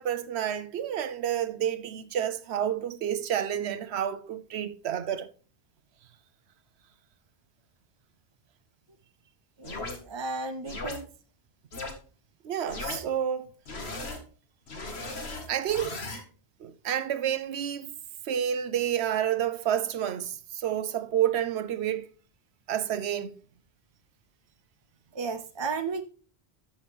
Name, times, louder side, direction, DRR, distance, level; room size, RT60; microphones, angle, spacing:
voice 1, 0.0-5.3 12.4-13.5 15.5-16.0 16.6-18.0 18.2-22.1 22.7-23.3, right 10 dB, 90° right, 1.0 m, -29 dB
sound 1, 9.6-10.0 10.7-11.0 11.7-11.9 12.7-13.0 13.7-14.2 14.7-16.2, left 2 dB, 80° left, 1.9 m, -36 dB
voice 2, 9.6-11.0 25.1-26.0, right 4 dB, 35° right, 0.4 m, -34 dB
12.5 x 5.7 x 3.4 m
omnidirectional pair, 1.1 m